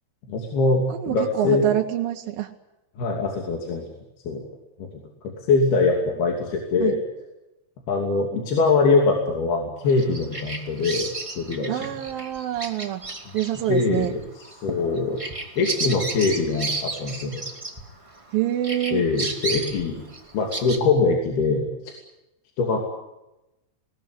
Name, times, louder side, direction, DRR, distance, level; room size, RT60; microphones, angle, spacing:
voice 1, 0.3-1.7 3.0-3.8 4.3-4.4 4.8-4.9 5.5-7.0 7.9-11.1 11.4-11.9 13.7-14.1 14.4-15.2 15.6-17.4 18.9-20.0 20.3-21.9 22.6-22.8, left 3 dB, 75° left, 1 dB, 4.8 m, -22 dB
voice 2, 0.9-2.5 6.8-6.9 11.7-13.0 13.3-14.1 18.3-19.1, right 12 dB, 70° right, 2 dB, 2.7 m, -26 dB
Bird vocalization bird call bird song, 9.9-18.3 18.6-20.8, right 3 dB, 10° right, 1.5 m, -32 dB
20.5 x 19.5 x 10.0 m, 0.95 s
omnidirectional pair, 4.6 m